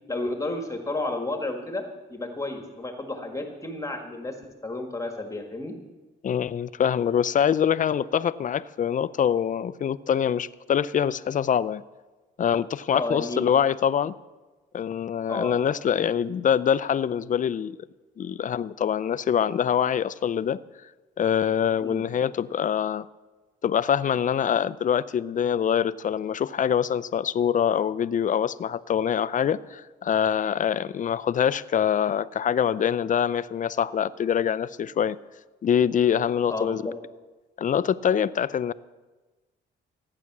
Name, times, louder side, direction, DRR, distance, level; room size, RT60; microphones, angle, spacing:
voice 1, 0.1-1.8 2.1-4.4 4.6-5.7 12.9-13.4 15.3-15.5 21.8-22.0 36.5-36.9, left 2 dB, 15° left, 4 dB, 1.7 m, -31 dB
voice 2, 6.2-11.8 12.4-14.1 14.7-17.8 18.2-20.6 21.2-23.1 23.6-35.2 35.6-36.8 37.6-38.7, left 8 dB, 40° left, 16 dB, 0.5 m, -24 dB
15.0 x 9.7 x 6.0 m, 1.2 s
cardioid pair, 90°, 20 cm